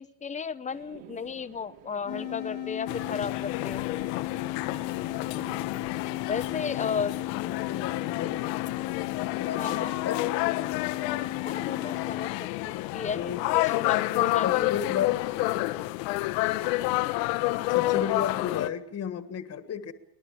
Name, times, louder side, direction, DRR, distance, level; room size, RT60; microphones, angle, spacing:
voice 1, 0.0-3.9 6.3-7.2 9.6-10.0 11.4-14.8, left 6 dB, 15° left, 14 dB, 0.8 m, -34 dB
sound 1, 0.7-5.7, right 9 dB, 60° right, 3.6 m, -49 dB
sound 2, 2.1-12.4, left 15 dB, 50° left, 1.4 m, -36 dB
sound 3, 2.9-18.7, left 18 dB, 80° left, 1.2 m, -29 dB
voice 2, 7.4-8.6 9.4-10.7 13.1-13.4 14.4-15.2 17.7-19.9, left 8 dB, 30° left, 10 dB, 1.6 m, -33 dB
24.0 x 19.5 x 7.4 m, 0.74 s
supercardioid pair, 140°, 49 cm